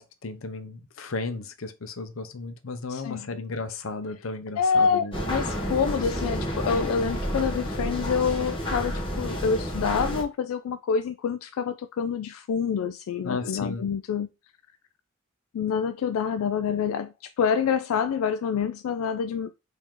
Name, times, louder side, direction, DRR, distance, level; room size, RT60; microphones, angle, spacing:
voice 1, 0.0-5.1 13.2-13.8, left 3 dB, 70° left, 0.7 m, -34 dB
voice 2, 2.9-3.3 4.6-14.3 15.5-19.6, left 6 dB, 90° left, 0.3 m, -27 dB
sound 1, 5.1-10.2, equal, 25° left, 1.1 m, -30 dB
4.7 x 2.8 x 3.7 m
head